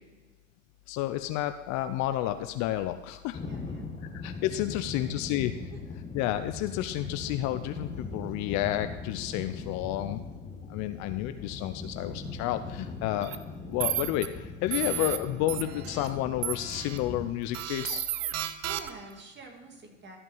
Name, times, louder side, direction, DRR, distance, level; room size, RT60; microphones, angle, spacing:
voice 1, 0.9-3.4 4.2-5.5 6.1-10.2 10.7-13.4 13.7-18.1, left 14 dB, 45° left, 10 dB, 0.6 m, -31 dB
sound 1, 3.3-17.3, left 4 dB, 20° left, 1.4 m, -40 dB
voice 2, 3.4-3.9 4.9-5.8 10.0-10.4 18.6-20.2, right 3 dB, 25° right, 3 dB, 2.0 m, -49 dB
sound 2, 13.2-13.4 13.8-14.3 14.7-15.2 15.5-16.1 16.4-17.0 17.5-19.1, right 11 dB, 70° right, 0.8 m, -33 dB
13.5 x 5.4 x 5.5 m, 1.2 s
hypercardioid pair, 110°, 39 cm